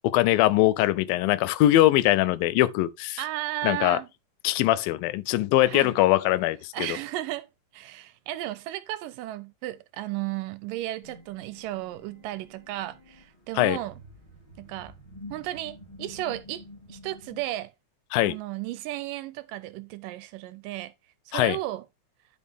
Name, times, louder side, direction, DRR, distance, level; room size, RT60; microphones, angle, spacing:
voice 1, 0.0-3.2 3.6-4.0 4.4-6.9 13.6-13.8 18.1-18.4 21.3-21.6, left 15 dB, 85° left, 2.4 m, -22 dB
voice 2, 3.2-4.1 5.7-6.0 6.7-7.5 7.7-14.0 14.6-14.9 15.3-17.7 18.2-20.9 21.3-21.8, right 15 dB, 80° right, 2.1 m, -34 dB
sound 1, 11.0-17.4, left 1 dB, 10° left, 2.2 m, -48 dB
11.0 x 5.3 x 3.5 m
omnidirectional pair, 4.0 m